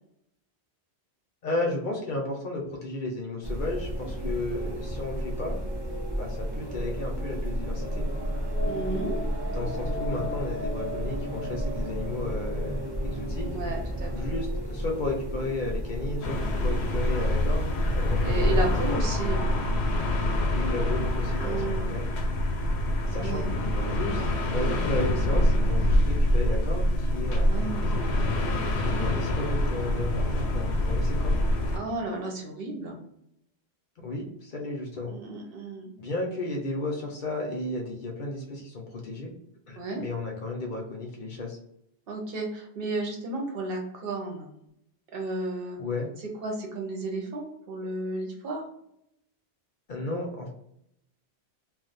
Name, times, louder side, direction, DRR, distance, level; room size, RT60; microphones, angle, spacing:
voice 1, 1.4-5.6 6.1-8.1 9.5-13.5 14.1-19.0 20.5-22.0 23.1-28.0 28.8-31.4 34.0-35.2 36.0-39.3 39.7-41.6 45.8-46.1 49.9-50.5, left 2 dB, 55° left, 0 dB, 0.7 m, -34 dB
sound 1, 3.4-18.9, equal, 35° right, 0.4 m, -32 dB
voice 2, 8.7-9.2 13.5-14.1 18.2-19.5 21.4-21.9 23.1-23.7 27.3-27.9 28.6-28.9 31.7-33.0 35.1-35.9 39.8-40.0 42.1-44.5 45.1-45.8 46.2-48.6, right 2 dB, 65° right, 0 dB, 0.9 m, -33 dB
sound 2, 16.2-31.8, left 1 dB, 85° left, 0.8 m, -25 dB
2.4 x 2.1 x 3.9 m, 0.75 s
omnidirectional pair, 1.1 m